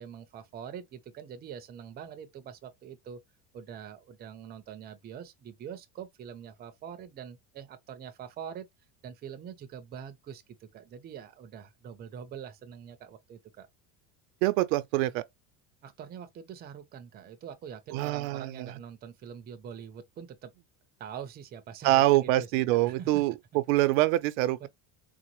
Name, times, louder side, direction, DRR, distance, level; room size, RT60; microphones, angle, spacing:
voice 1, 0.0-3.2 3.5-8.7 9.0-13.7 15.8-20.5 21.0-23.2 24.6-24.7, right 8 dB, 25° right, 0.5 m, -44 dB
voice 2, 14.4-15.2 17.9-18.7 21.8-23.3 23.7-24.7, right 17 dB, 85° right, 0.5 m, -25 dB
3.9 x 2.0 x 2.9 m
cardioid pair, 145°, 39 cm